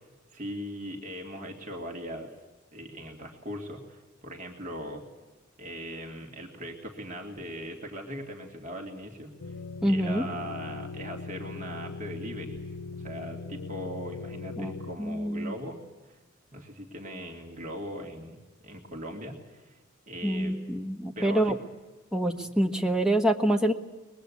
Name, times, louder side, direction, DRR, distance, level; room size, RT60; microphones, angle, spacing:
voice 1, 0.3-2.3 2.7-5.0 5.6-9.6 9.9-12.6 12.9-15.8 16.5-18.4 18.6-19.8 20.1-20.6 21.2-21.6 22.4-22.5, equal, 40° right, 1 dB, 2.1 m, -39 dB
sound 1, 9.4-15.0, left 3 dB, 90° left, 0.7 m, -39 dB
voice 2, 9.8-10.2 14.6-14.7 15.0-15.5 20.2-21.6 22.1-23.7, right 1 dB, 5° right, 4 dB, 1.3 m, -26 dB
23.5 x 20.5 x 8.3 m, 1.2 s
head